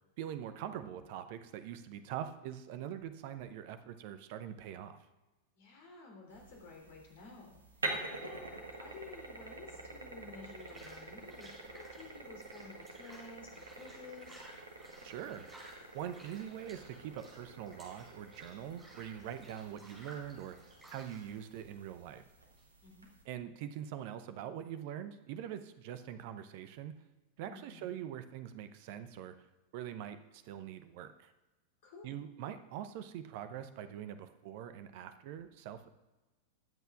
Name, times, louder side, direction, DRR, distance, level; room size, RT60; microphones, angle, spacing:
voice 1, 0.2-5.0 15.0-15.5 15.9-20.6 20.9-22.2 23.3-27.0 27.4-29.4 29.7-31.3 32.0-35.9, right 10 dB, 50° right, 10 dB, 0.7 m, -43 dB
voice 2, 5.5-7.9 8.2-14.4 22.8-23.1 27.4-28.0 31.8-32.2, left 4 dB, 55° left, 0 dB, 3.3 m, -52 dB
sound 1, 6.3-23.2, right 2 dB, 75° right, 1.3 m, -47 dB
sound 2, 7.9-22.6, right 1 dB, 15° right, 4.3 m, -58 dB
21.0 x 8.0 x 2.4 m, 1.1 s
figure-of-eight pair, 90°, 0 cm